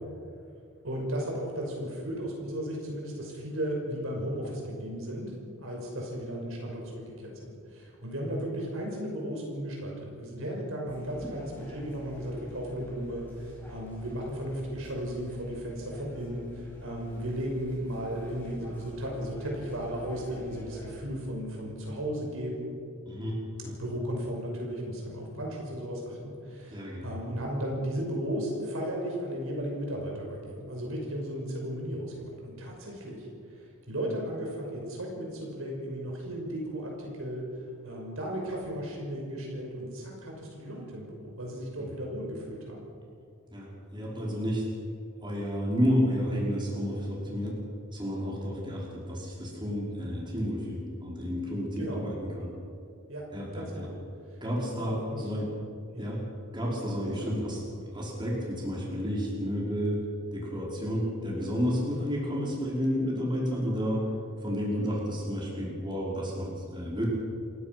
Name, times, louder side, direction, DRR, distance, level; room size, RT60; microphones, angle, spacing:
voice 1, 0.8-5.4 5.6-22.7 23.6-33.3 33.9-37.4 37.8-42.9 51.8-52.0 53.1-53.2 53.5-54.0 54.8-55.2 55.9-56.0 57.0-57.4, equal, 70° right, -1 dB, 5.9 m, -35 dB
sound 1, 10.9-21.0, left 1 dB, 10° left, 7.0 m, -48 dB
voice 2, 23.1-23.7 26.7-27.2 41.8-41.9 43.5-44.7 45.2-47.6 47.9-52.5 53.3-53.9 54.4-55.4 56.0-56.3 56.5-57.6 57.9-64.1 64.4-67.1, equal, 20° right, -4 dB, 5.3 m, -31 dB
28.5 x 16.5 x 6.1 m, 2.4 s
head